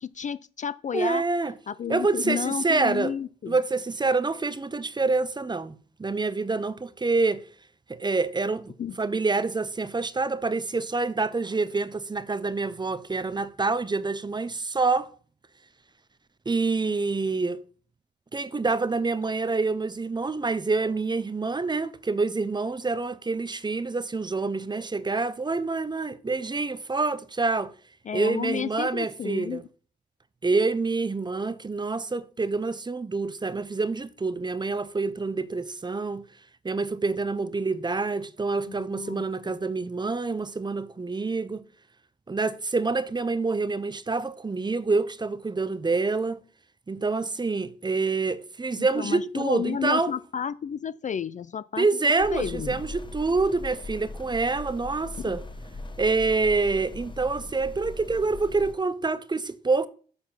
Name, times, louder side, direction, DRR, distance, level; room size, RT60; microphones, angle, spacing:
voice 1, 0.0-1.2 1.7-3.6 8.8-8.9 28.1-29.6 38.7-39.6 48.7-52.8 55.2-55.4, left 8 dB, 40° left, 0.4 m, -32 dB
voice 2, 0.9-1.5 1.9-3.2 3.5-5.7 6.0-7.4 7.9-8.7 9.0-15.1 16.5-17.6 18.3-27.7 28.1-29.6 30.4-36.3 36.6-41.6 42.3-46.4 46.9-50.1 51.8-55.4 56.0-59.9, right 3 dB, 20° right, 0.7 m, -27 dB
sound 1, 52.2-58.7, left 2 dB, 25° left, 1.0 m, -40 dB
7.1 x 4.2 x 5.6 m
supercardioid pair, 55°, 20 cm